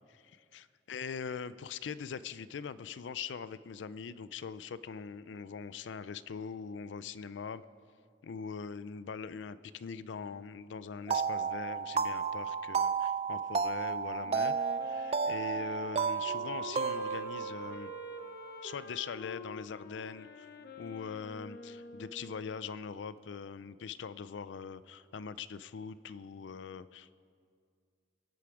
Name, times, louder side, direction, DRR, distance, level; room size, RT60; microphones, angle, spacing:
voice 1, 0.1-7.6 8.2-14.6 14.8-17.9 18.6-20.5 20.8-27.1, left 6 dB, 80° left, 16 dB, 0.4 m, -42 dB
sound 1, 11.1-18.5, right 6 dB, 35° right, 0.4 m, -33 dB
Wind instrument woodwind instrument, 14.2-22.6, left 2 dB, 60° left, 0.8 m, -47 dB
22.0 x 8.5 x 4.8 m, 2.2 s
head